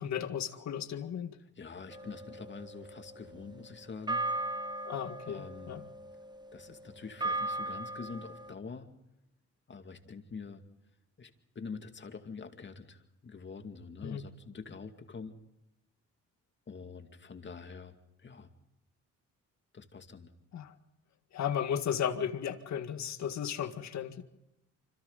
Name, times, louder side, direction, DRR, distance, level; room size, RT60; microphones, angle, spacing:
voice 1, 0.0-1.4 4.8-5.8 14.0-14.3 20.5-20.7 21.3-24.2, left 8 dB, 65° left, 1.9 m, -35 dB
voice 2, 1.4-4.2 5.3-5.8 6.5-8.9 9.7-10.6 11.2-15.3 16.7-18.5 19.7-20.3, left 5 dB, 40° left, 2.4 m, -45 dB
sound 1, 1.9-8.5, right 2 dB, 15° right, 1.1 m, -38 dB
26.5 x 26.0 x 4.0 m
cardioid pair, 90°, 30 cm